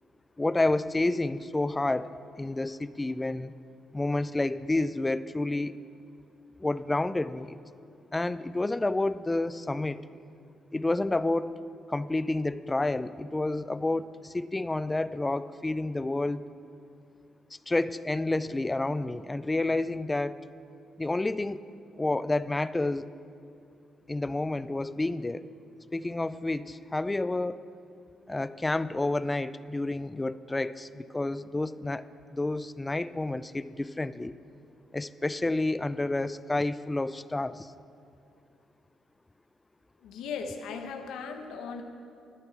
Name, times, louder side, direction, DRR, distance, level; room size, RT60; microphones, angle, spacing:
voice 1, 0.4-3.5 3.9-5.8 6.6-7.6 8.1-10.0 10.7-11.6 11.9-16.4 17.7-20.4 21.0-21.6 22.0-23.1 24.1-25.5 25.9-27.6 28.3-32.0 32.3-34.3 34.9-37.7, left 2 dB, 15° left, 15 dB, 0.4 m, -29 dB
voice 2, 40.0-41.8, left 5 dB, 85° left, 4 dB, 1.1 m, -37 dB
13.0 x 9.2 x 6.0 m, 2.6 s
cardioid pair, 90°, 0 cm